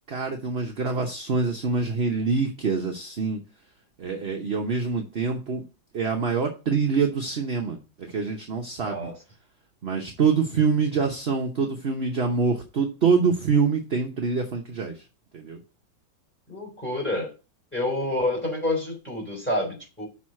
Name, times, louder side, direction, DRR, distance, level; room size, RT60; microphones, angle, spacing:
voice 1, 0.1-3.4 4.0-5.6 5.9-9.1 9.8-14.9 15.3-15.6, right 5 dB, 45° right, 2 dB, 0.8 m, -25 dB
voice 2, 16.5-17.3 17.7-20.1, left 1 dB, 5° left, 0 dB, 3.4 m, -28 dB
6.1 x 4.0 x 6.3 m, 0.32 s
omnidirectional pair, 2.1 m